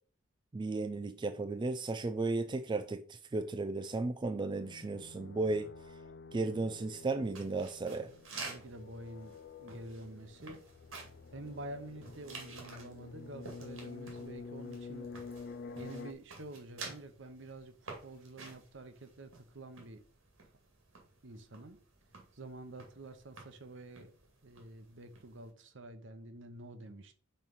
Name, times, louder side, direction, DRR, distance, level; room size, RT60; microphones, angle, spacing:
voice 1, 0.5-5.7 6.3-8.1, right 3 dB, 25° right, 0.3 m, -35 dB
sound 1, 4.5-16.1, left 4 dB, 55° left, 0.5 m, -49 dB
sound 2, 7.2-25.5, right 3 dB, 85° right, 2.3 m, -51 dB
voice 2, 8.4-10.6 11.3-15.1 15.7-17.7 18.0-20.0 21.2-21.8 22.3-24.1 24.4-27.1, right 2 dB, 65° right, 0.9 m, -48 dB
5.6 x 4.5 x 5.5 m
head